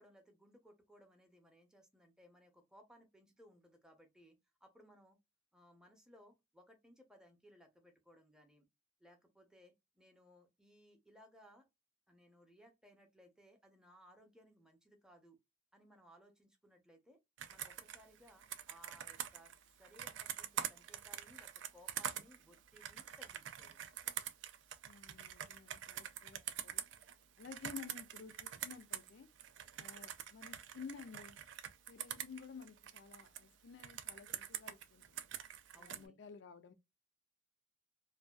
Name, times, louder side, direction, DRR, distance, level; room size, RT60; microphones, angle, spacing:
voice 1, 0.0-4.4 4.6-5.2 5.5-8.7 9.0-11.7 12.1-15.4 15.7-17.2 17.5-24.0 32.1-32.2 35.7-36.2, equal, 5° right, 0.6 m, -63 dB
Computer keyboard, 17.4-29.1 29.4-33.4 33.8-36.0, right 10 dB, 70° right, 0.4 m, -45 dB
voice 2, 24.8-26.9 27.4-29.3 29.8-31.4 31.9-35.3 35.7-36.7, left 5 dB, 65° left, 0.4 m, -53 dB
2.5 x 2.3 x 2.2 m
head